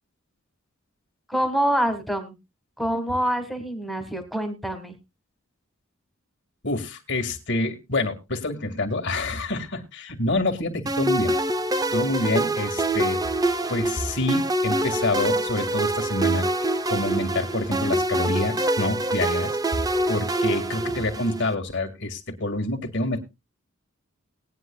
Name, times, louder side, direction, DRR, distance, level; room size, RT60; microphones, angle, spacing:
voice 1, 1.3-2.4 2.8-4.9, right 1 dB, ahead, 5 dB, 1.6 m, -26 dB
voice 2, 6.6-11.4 11.9-13.2 13.7-16.5 16.9-19.6 20.1-23.2, left 2 dB, 60° left, 5 dB, 2.0 m, -27 dB
sound 1, 10.9-21.5, right 1 dB, 20° right, 0.6 m, -25 dB
19.0 x 9.8 x 2.3 m, 0.25 s
head